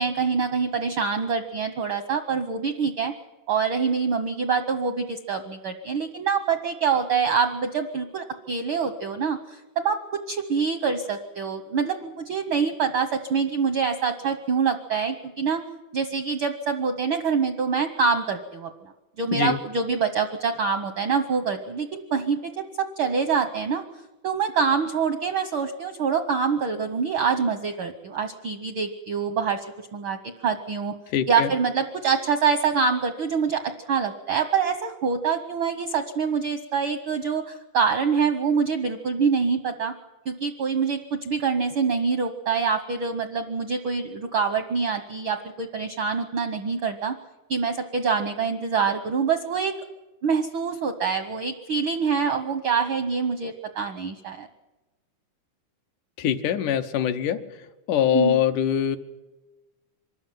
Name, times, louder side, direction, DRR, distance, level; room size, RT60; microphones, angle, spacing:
voice 1, 0.0-3.1 3.5-10.0 10.3-15.6 15.9-18.7 19.2-22.5 22.8-23.9 24.2-29.6 29.9-30.2 30.4-30.9 31.3-33.6 33.9-39.9 40.3-47.1 47.5-49.7 50.2-54.5 58.1-58.4, right 5 dB, 75° right, 8 dB, 1.2 m, -25 dB
voice 2, 31.1-31.5 56.2-57.4 57.9-59.0, left 9 dB, 80° left, 8 dB, 2.4 m, -23 dB
24.0 x 13.5 x 9.1 m, 1.1 s
omnidirectional pair, 3.5 m